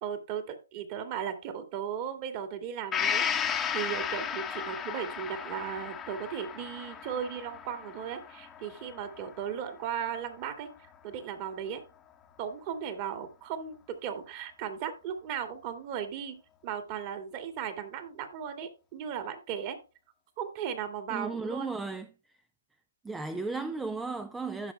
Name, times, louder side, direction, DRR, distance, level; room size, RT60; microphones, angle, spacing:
voice 1, 0.0-10.7 11.0-11.8 12.4-16.4 16.6-19.8 20.4-21.8, right 8 dB, 30° right, 2.1 m, -36 dB
Gong, 2.9-10.6 10.9-11.0, left 8 dB, 10° left, 1.1 m, -35 dB
voice 2, 21.1-22.1 23.0-24.7, right 3 dB, 5° right, 0.5 m, -34 dB
16.0 x 6.2 x 2.2 m
figure-of-eight pair, 140°, 0 cm